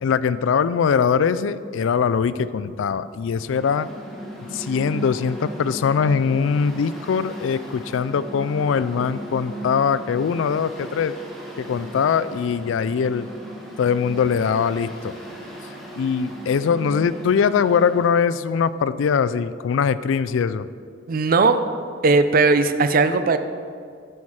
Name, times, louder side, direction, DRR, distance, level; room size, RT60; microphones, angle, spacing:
voice 1, 0.0-3.9 4.5-11.1 11.6-13.3 13.8-15.2 16.0-20.7, left 6 dB, 90° left, 15 dB, 0.3 m, -22 dB
Mechanical fan, 3.3-18.1, right 1 dB, ahead, 1.3 m, -37 dB
voice 2, 21.1-21.6 22.0-23.4, right 3 dB, 50° right, 10 dB, 0.5 m, -17 dB
10.5 x 5.7 x 4.8 m, 2.2 s
head